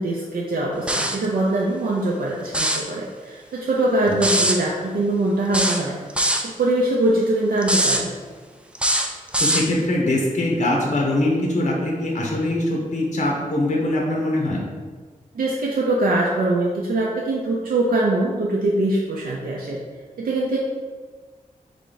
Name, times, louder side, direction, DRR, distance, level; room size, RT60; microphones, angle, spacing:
voice 1, 0.0-6.0 6.4-8.1 15.3-19.8 20.2-20.6, right 2 dB, 85° right, -3 dB, 0.5 m, -22 dB
sound 1, 0.9-1.3 2.5-2.9 4.2-4.6 5.5-6.5 7.6-8.0 8.8-9.7, right 1 dB, 10° right, 0.3 m, -21 dB
voice 2, 9.4-14.6, left 1 dB, 55° left, -1 dB, 0.8 m, -22 dB
3.7 x 3.4 x 3.9 m, 1.4 s
wide cardioid pair, 135°, 14 cm